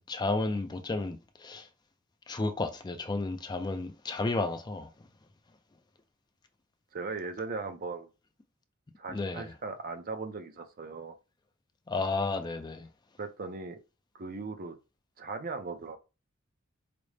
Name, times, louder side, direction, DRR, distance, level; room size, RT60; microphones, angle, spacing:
voice 1, 0.0-1.7 2.3-4.9 9.1-9.5 11.9-12.9, left 3 dB, 20° left, 0.3 m, -32 dB
voice 2, 6.9-8.1 9.0-11.1 13.2-13.8 14.1-14.8 15.2-16.0, right 4 dB, 45° right, 0.5 m, -38 dB
5.0 x 2.0 x 3.2 m
head